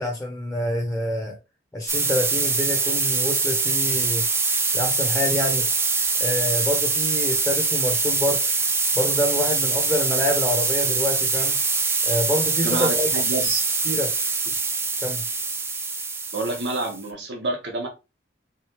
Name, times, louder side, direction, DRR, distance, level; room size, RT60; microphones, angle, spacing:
voice 1, 0.0-1.4 1.7-4.2 4.7-5.7 6.2-8.4 8.9-11.6 12.0-13.1 13.9-14.1 15.0-15.2, left 1 dB, 5° left, 0.7 m, -26 dB
sound 1, 1.9-17.0, right 4 dB, 15° right, 0.4 m, -23 dB
voice 2, 12.6-13.6 16.3-17.9, right 2 dB, 85° right, 1.1 m, -28 dB
3.8 x 3.2 x 3.1 m
head